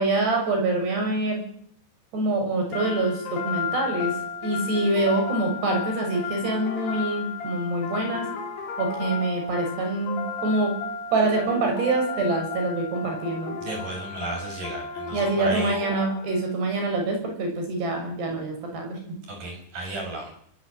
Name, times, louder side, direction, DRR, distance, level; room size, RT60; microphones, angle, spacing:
voice 1, 0.0-1.4 2.1-4.1 4.4-8.3 8.8-10.8 11.1-13.6 15.1-19.0, right 2 dB, 65° right, 3 dB, 8.8 m, -25 dB
sound 1, 2.7-16.6, left 5 dB, 65° left, 5.1 m, -34 dB
voice 2, 13.6-15.8 19.3-20.3, right 2 dB, 45° right, 3 dB, 8.5 m, -33 dB
23.5 x 22.5 x 9.2 m, 0.65 s
omnidirectional pair, 5.2 m